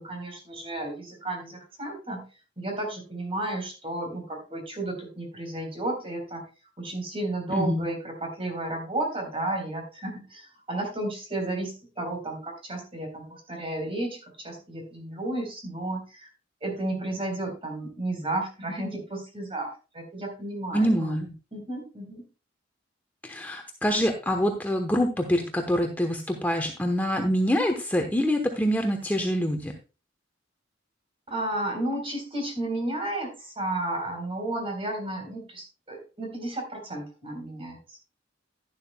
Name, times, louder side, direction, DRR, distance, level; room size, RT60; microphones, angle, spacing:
voice 1, 0.0-2.3 2.6-6.4 6.8-16.3 16.6-21.1 21.5-22.3 31.3-38.0, right 1 dB, 30° right, 3 dB, 3.9 m, -33 dB
voice 2, 7.5-7.8 20.7-21.3 23.2-29.7, equal, 10° left, 3 dB, 1.0 m, -25 dB
11.5 x 11.0 x 2.2 m, 0.31 s
head